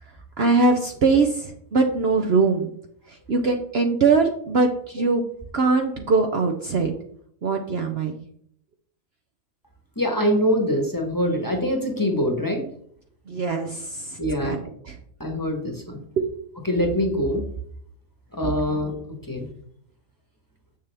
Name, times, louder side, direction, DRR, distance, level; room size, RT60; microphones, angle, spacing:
voice 1, 0.4-2.7 3.3-5.2 5.5-6.9 7.4-8.2 13.3-14.6 16.2-16.3 18.7-18.8, right 4 dB, 55° right, 4 dB, 0.8 m, -22 dB
voice 2, 10.0-12.6 14.2-14.5 15.2-16.0 16.6-17.4 18.3-18.9 19.3-19.5, equal, 15° left, 2 dB, 1.1 m, -24 dB
7.5 x 6.6 x 3.4 m, 0.65 s
omnidirectional pair, 1.5 m